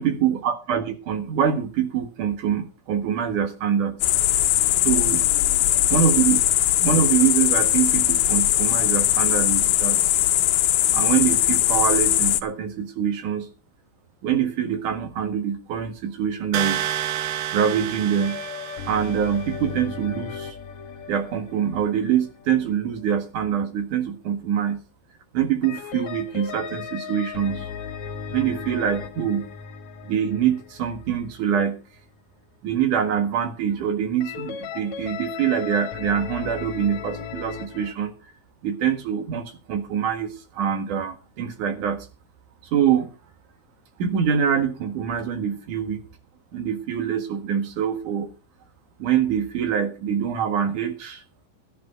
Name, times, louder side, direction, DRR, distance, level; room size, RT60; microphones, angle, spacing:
voice 1, 0.0-4.0 4.8-5.2 5.9-6.4 6.8-10.0 10.9-13.5 14.2-17.0 17.5-18.4 18.9-20.6 21.1-24.8 25.3-27.7 28.3-29.5 30.1-31.8 32.6-38.1 38.6-42.1 42.7-43.1 44.0-46.0 46.5-48.3 49.0-51.2, right 8 dB, 65° right, 8 dB, 3.1 m, -24 dB
sound 1, 4.0-12.4, left 14 dB, 90° left, 2.6 m, -20 dB
sound 2, 16.5-19.4, right 12 dB, 90° right, 1.4 m, -29 dB
sound 3, 18.2-23.1 25.6-31.7 34.2-37.9, left 7 dB, 60° left, 2.5 m, -36 dB
13.0 x 9.7 x 5.2 m, 0.32 s
omnidirectional pair, 4.0 m